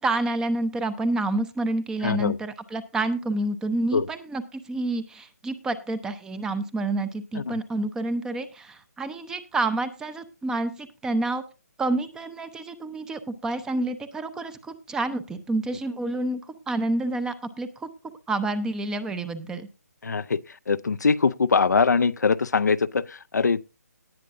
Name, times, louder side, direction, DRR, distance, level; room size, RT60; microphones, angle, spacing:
voice 1, 0.0-11.4 11.8-17.9 18.3-19.7, right 2 dB, 5° right, 0.7 m, -28 dB
voice 2, 2.0-2.4 3.9-4.1 7.5-7.6 20.0-23.7, left 5 dB, 80° left, 0.5 m, -23 dB
18.5 x 8.3 x 2.6 m
figure-of-eight pair, 150°, 9 cm